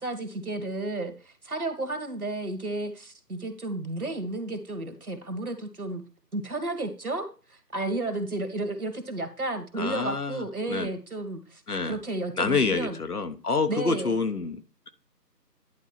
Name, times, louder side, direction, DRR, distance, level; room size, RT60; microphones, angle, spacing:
voice 1, 0.0-6.0 6.3-13.0 13.7-14.2, right 2 dB, 60° right, 7 dB, 2.0 m, -32 dB
voice 2, 9.8-10.9 11.7-12.0 12.4-14.6, left 4 dB, 65° left, 9 dB, 1.3 m, -27 dB
11.0 x 4.0 x 5.8 m, 0.34 s
figure-of-eight pair, 165°, 49 cm